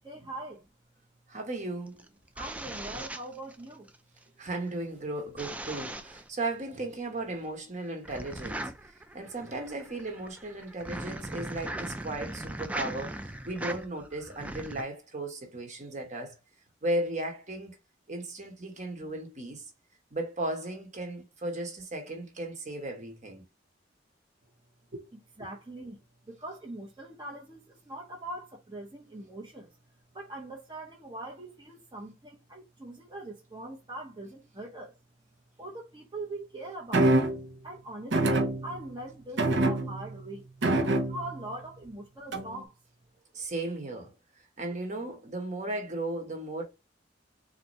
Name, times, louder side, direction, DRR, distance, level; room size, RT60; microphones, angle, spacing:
voice 1, 0.0-0.7 2.3-3.9 25.4-26.0 26.3-29.7 30.1-34.9 35.6-37.1 37.6-40.5 41.0-42.7, right 1 dB, 25° right, 0.8 m, -42 dB
voice 2, 1.3-2.0 4.4-8.7 9.1-16.4 16.8-17.7 18.1-19.6 20.1-23.4 24.9-25.0 25.4-25.5 43.3-44.1 44.6-46.6, right 2 dB, 40° right, 1.2 m, -36 dB
sound 1, 1.9-4.0 5.4-6.3 8.0-14.8, right 1 dB, 10° right, 0.4 m, -39 dB
sound 2, 36.9-37.5 38.1-39.0 39.4-40.2 40.6-41.4 42.3-42.6, right 1 dB, 75° right, 0.9 m, -26 dB
4.1 x 2.7 x 3.1 m
head